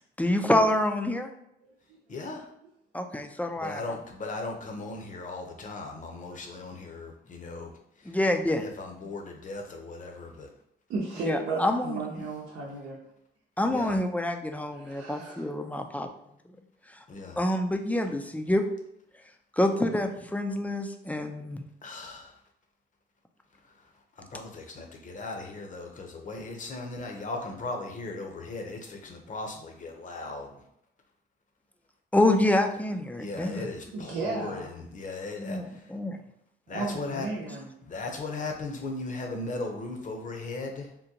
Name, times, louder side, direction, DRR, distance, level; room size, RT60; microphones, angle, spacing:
voice 1, 0.2-1.3 2.9-3.8 8.1-8.6 11.2-12.0 13.6-16.1 17.4-18.6 19.6-21.6 32.1-33.6 35.4-35.6 35.9-36.2, left 1 dB, 5° left, 5 dB, 0.3 m, -26 dB
voice 2, 2.1-2.5 3.4-8.2 8.6-10.5 13.7-14.0 17.1-17.5 21.8-22.4 23.5-30.7 33.2-36.0 36.7-37.3 37.8-40.9, left 3 dB, 40° left, 2 dB, 0.7 m, -38 dB
voice 3, 10.9-13.0 14.7-15.5 33.9-34.7 36.7-37.7, right 3 dB, 90° right, -4 dB, 0.7 m, -34 dB
3.7 x 2.2 x 2.8 m, 0.78 s
cardioid pair, 90°, 20 cm